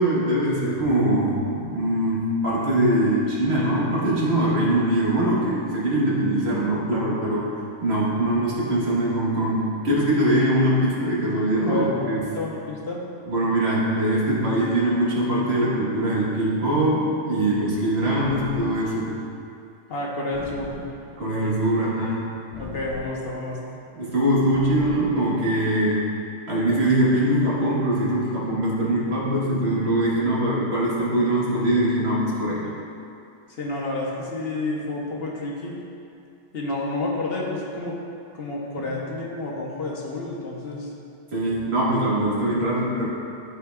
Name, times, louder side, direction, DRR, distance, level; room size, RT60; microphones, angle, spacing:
voice 1, 0.0-7.5 7.8-12.3 13.3-19.1 21.2-22.4 23.9-26.1 26.5-32.7 38.8-38.9 41.3-43.1, right 1 dB, 60° right, -6 dB, 1.6 m, -22 dB
voice 2, 11.7-13.0 19.9-20.8 22.6-23.8 33.6-35.8 36.5-38.0 38.3-40.9, left 2 dB, 55° left, -3 dB, 1.0 m, -30 dB
sound 1, 18.2-19.1 20.3-21.3 22.5-23.5 24.5-25.4, left 3 dB, 10° right, 1.2 m, -40 dB
11.5 x 4.5 x 2.3 m, 2.6 s
omnidirectional pair, 1.2 m